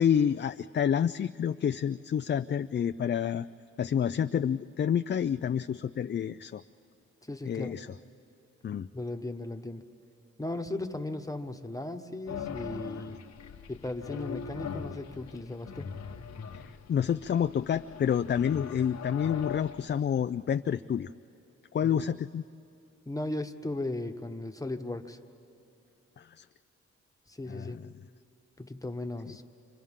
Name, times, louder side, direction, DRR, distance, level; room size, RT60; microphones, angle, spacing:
voice 1, 0.0-3.5 3.8-6.6 7.4-7.9 8.6-8.9 16.5-21.1 21.7-22.4 26.2-26.4 27.5-27.9 29.3-29.4, left 8 dB, 40° left, 10 dB, 0.4 m, -29 dB
voice 2, 7.3-7.7 8.9-9.8 10.4-13.2 13.7-15.9 21.8-22.1 23.1-25.2 27.3-27.8 28.6-29.4, left 2 dB, 10° left, 6 dB, 1.3 m, -36 dB
sound 1, 12.3-20.0, left 7 dB, 70° left, 1.1 m, -41 dB
29.5 x 26.0 x 3.7 m, 2.8 s
cardioid pair, 55°, 29 cm